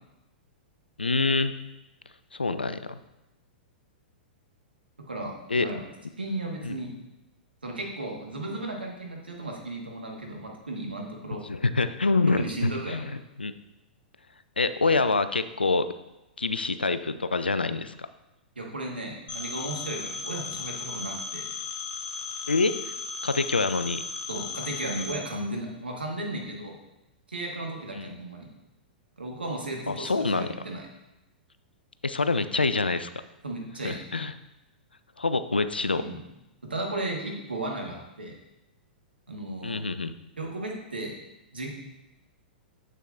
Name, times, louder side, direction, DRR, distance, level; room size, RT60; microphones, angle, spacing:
voice 1, 1.0-1.5 2.3-3.0 5.5-5.7 6.6-6.8 11.4-13.5 14.6-15.9 16.4-17.9 22.5-22.7 23.2-24.0 27.9-28.1 29.9-30.5 32.0-33.1 33.8-34.3 35.2-36.0 39.6-40.1, left 3 dB, 90° left, 12 dB, 0.4 m, -26 dB
voice 2, 5.1-5.8 6.2-6.9 7.6-11.4 12.3-13.1 18.5-21.5 24.3-26.8 27.3-28.5 29.2-30.9 33.4-34.0 35.9-36.2 36.6-38.3 39.3-39.8 40.4-41.1 41.5-41.7, right 2 dB, 85° right, 0 dB, 1.4 m, -35 dB
Telephone, 19.3-25.1, left 4 dB, 30° left, 1.0 m, -36 dB
7.8 x 6.4 x 2.5 m, 0.97 s
figure-of-eight pair, 105°, 5 cm